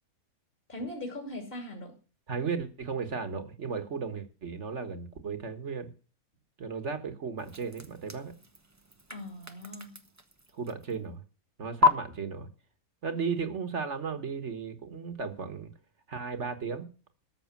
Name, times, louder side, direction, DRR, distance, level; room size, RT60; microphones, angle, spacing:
voice 1, 0.7-2.0 9.1-10.0, left 1 dB, 35° left, 2.9 m, -40 dB
voice 2, 2.3-5.9 6.6-8.3 10.5-11.2 11.6-12.5 13.0-15.7 16.1-16.9, right 5 dB, 50° right, 1.8 m, -35 dB
sound 1, 7.4-11.2 11.8-11.9, left 4 dB, 15° right, 0.9 m, -31 dB
13.5 x 6.6 x 7.2 m
omnidirectional pair, 1.6 m